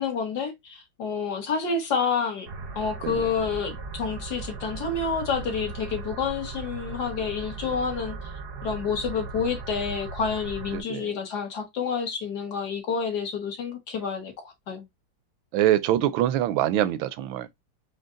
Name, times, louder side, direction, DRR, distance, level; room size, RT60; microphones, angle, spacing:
voice 1, 0.0-2.5 2.8-8.2 8.6-14.3 14.7-14.9, left 5 dB, 60° left, 1.7 m, -29 dB
sound 1, 2.5-10.8, right 3 dB, 55° right, 0.6 m, -37 dB
voice 2, 10.7-11.1 15.5-17.5, right 12 dB, 85° right, 1.4 m, -24 dB
5.2 x 2.2 x 3.7 m
omnidirectional pair, 2.1 m